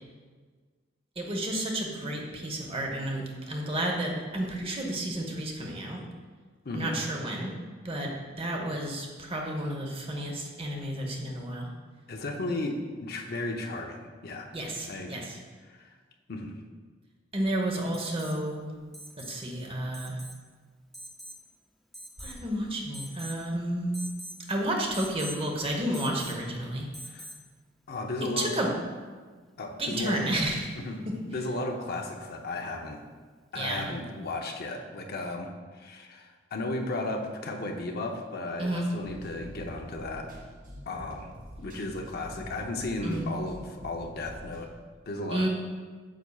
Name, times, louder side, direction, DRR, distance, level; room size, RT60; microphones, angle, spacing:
voice 1, 1.2-6.1 6.7-7.6 7.8-11.7 14.5-15.4 17.3-18.7 19.2-20.2 22.2-24.1 24.5-26.9 28.2-28.8 29.8-30.8 31.1-31.2 33.5-33.9 38.6-38.9 43.0-43.2 45.3-45.5, right 1 dB, 30° right, 1 dB, 1.0 m, -31 dB
voice 2, 6.6-7.0 12.1-14.5 14.9-15.3 15.6-15.9 16.3-16.6 27.0-27.3 27.9-28.6 29.6-30.2 30.7-33.0 33.5-40.3 40.9-41.3 41.6-44.7 45.1-45.5, left 2 dB, 55° left, 3 dB, 0.7 m, -35 dB
Alarm, 17.9-18.4 18.9-19.4 19.9-20.4 20.9-21.4 21.9-22.5 22.9-23.4 23.9-24.4 24.9-25.4 25.9-26.4 26.9-27.4 29.2-29.3, equal, ahead, 0.5 m, -43 dB
sound 1, 39.0-44.7, equal, 50° right, 1.9 m, -46 dB
9.1 x 6.9 x 2.4 m, 1.5 s
head